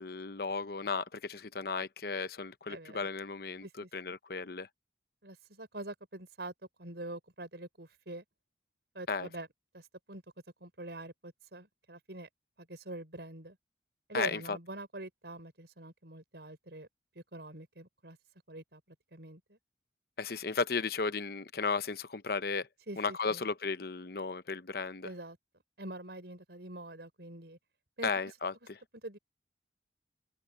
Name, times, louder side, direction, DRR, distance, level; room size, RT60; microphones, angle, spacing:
voice 1, 0.0-3.7 3.9-4.7 9.1-9.3 14.1-14.6 20.2-22.7 23.0-25.1 28.0-28.5, left 4 dB, 60° left, 0.8 m, -34 dB
voice 2, 2.7-3.1 3.6-4.2 5.2-6.5 6.8-8.2 8.9-9.5 9.7-10.2 10.6-12.3 12.6-13.6 14.1-16.9 17.2-18.2 18.5-18.8 19.1-19.6 22.9-23.5 25.0-25.4 25.8-27.6 28.0-28.1 29.0-29.2, right 1 dB, 70° right, 5.6 m, -44 dB
open air
head